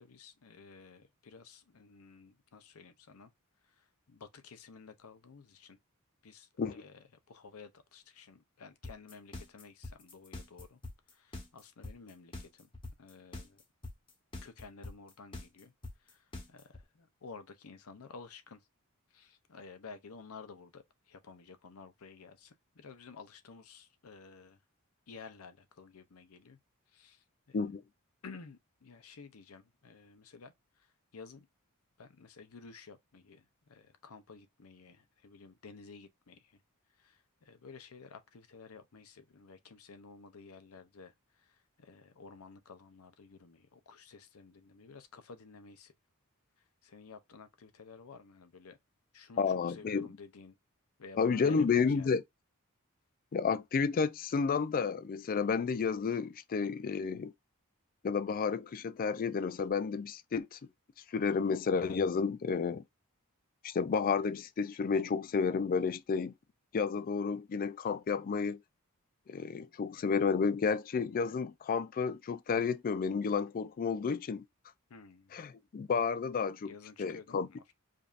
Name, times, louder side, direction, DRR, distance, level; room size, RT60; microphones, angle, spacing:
voice 1, 0.0-3.3 3.7-5.8 6.2-10.8 11.1-12.7 13.0-13.6 14.4-15.7 16.0-18.6 19.1-24.6 25.1-26.6 26.9-27.6 28.2-30.5 30.8-30.9 31.1-31.5 32.0-36.6 37.0-45.9 46.8-48.8 49.1-50.6 51.0-52.1 74.9-75.4 76.6-77.6, left 4 dB, 75° left, 0.6 m, -53 dB
sound 1, 8.8-16.8, left 2 dB, 25° left, 1.0 m, -43 dB
voice 2, 49.4-50.1 51.2-52.2 53.3-57.3 58.0-60.6 61.1-62.8 63.6-66.3 66.7-68.6 69.3-74.4 75.3-77.5, left 5 dB, 40° left, 0.3 m, -31 dB
5.1 x 2.7 x 2.5 m
head